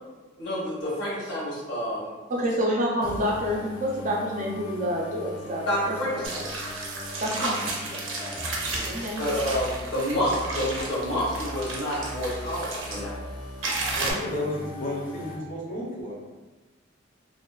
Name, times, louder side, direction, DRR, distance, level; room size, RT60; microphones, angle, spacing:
voice 1, 0.4-2.1 5.7-6.5 9.2-13.3, equal, 70° left, -6 dB, 1.0 m, -28 dB
voice 2, 2.3-6.0 7.1-8.4 8.8-9.3, equal, 40° right, -2 dB, 0.4 m, -28 dB
sound 1, 3.0-15.4, left 1 dB, 90° left, 0.7 m, -40 dB
sound 2, 6.2-13.0 13.6-14.1, right 2 dB, 90° right, 0.5 m, -33 dB
voice 3, 13.9-16.1, left 1 dB, 45° left, -4 dB, 0.6 m, -32 dB
2.4 x 2.3 x 2.3 m, 1.2 s
head